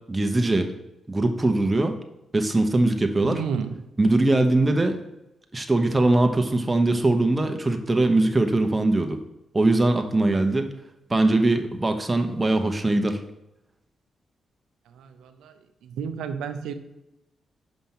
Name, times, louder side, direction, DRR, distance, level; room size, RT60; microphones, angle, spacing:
voice 1, 0.1-0.7 1.1-2.0 2.3-3.4 4.0-5.0 5.5-9.2 9.5-10.7 11.1-13.2, right 2 dB, 25° right, 5 dB, 1.0 m, -21 dB
voice 2, 3.2-3.8 15.0-15.5 15.8-16.7, right 6 dB, 90° right, 8 dB, 0.6 m, -31 dB
5.9 x 5.1 x 5.7 m, 0.89 s
supercardioid pair, 50°, 0 cm